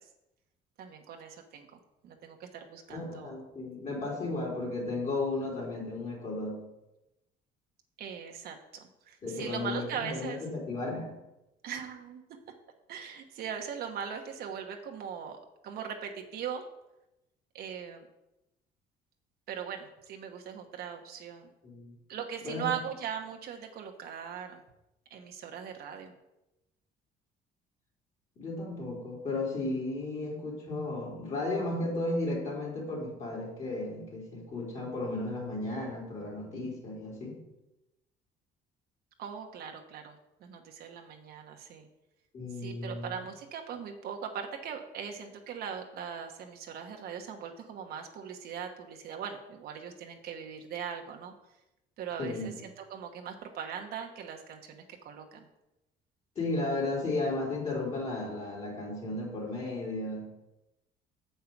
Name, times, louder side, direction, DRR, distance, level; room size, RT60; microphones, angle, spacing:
voice 1, 0.8-3.3 8.0-10.4 11.6-12.2 12.9-16.7 17.5-18.1 19.5-21.5 22.1-24.6 25.1-26.1 39.2-41.9 42.6-51.3 52.0-55.5, right 7 dB, 65° right, 3 dB, 1.2 m, -40 dB
voice 2, 2.9-6.6 9.2-11.1 21.6-21.9 22.4-22.7 28.4-37.4 42.3-43.1 52.2-52.5 56.3-60.3, left 2 dB, 45° left, -3 dB, 3.3 m, -34 dB
7.5 x 5.6 x 6.0 m, 0.93 s
cardioid pair, 110°, 17 cm